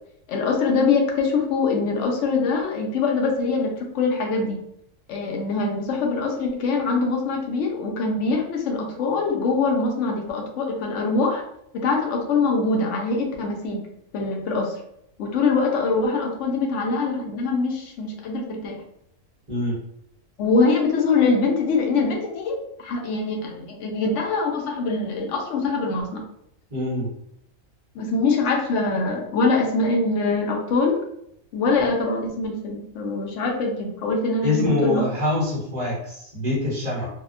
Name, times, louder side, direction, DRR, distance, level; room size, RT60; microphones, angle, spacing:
voice 1, 0.3-4.6 5.1-11.4 11.7-13.8 14.1-14.7 15.2-18.8 20.4-26.2 27.9-31.0 31.5-35.1, left 3 dB, 70° left, 1 dB, 0.9 m, -23 dB
voice 2, 19.5-19.8 26.7-27.1 34.4-37.1, left 2 dB, 35° right, -6 dB, 0.9 m, -24 dB
2.7 x 2.0 x 2.4 m, 0.73 s
omnidirectional pair, 1.4 m